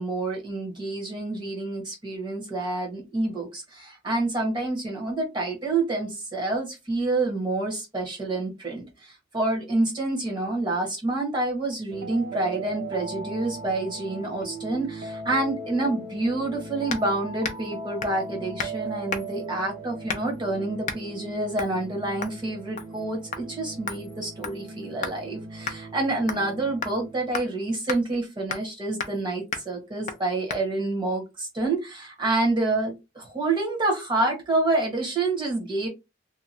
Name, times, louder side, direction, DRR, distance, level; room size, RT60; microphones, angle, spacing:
voice 1, 0.0-35.9, right 2 dB, 25° right, 0 dB, 1.2 m, -28 dB
sound 1, 11.9-27.6, right 2 dB, 45° right, 0.5 m, -39 dB
sound 2, 16.9-17.1 17.4-17.7 18.0-18.2 18.6-18.8 19.1-19.4 20.1-20.4 20.8-21.0 21.6-21.8 22.2-22.4 22.8-23.0 23.3-23.4 23.9-25.2 25.7-25.8 26.3-26.5 26.8-27.0 27.3-27.5 27.9-28.0 28.5-28.7 29.0-29.2 29.5-29.7 30.1-30.2 30.5-30.6, left 5 dB, 40° left, 0.5 m, -33 dB
2.9 x 2.2 x 2.7 m, 0.24 s
head